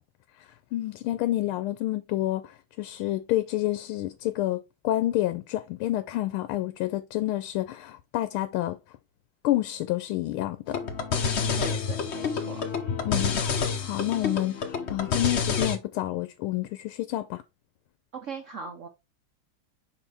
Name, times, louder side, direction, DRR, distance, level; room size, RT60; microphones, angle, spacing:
voice 1, 0.7-8.8 9.4-10.8 13.0-17.4, left 15 dB, 85° left, 1.5 m, -29 dB
sound 1, 10.7-15.8, left 6 dB, 65° left, 0.6 m, -28 dB
voice 2, 11.6-12.6 18.1-18.9, right 5 dB, 70° right, 0.7 m, -39 dB
5.8 x 4.8 x 3.4 m
omnidirectional pair, 2.3 m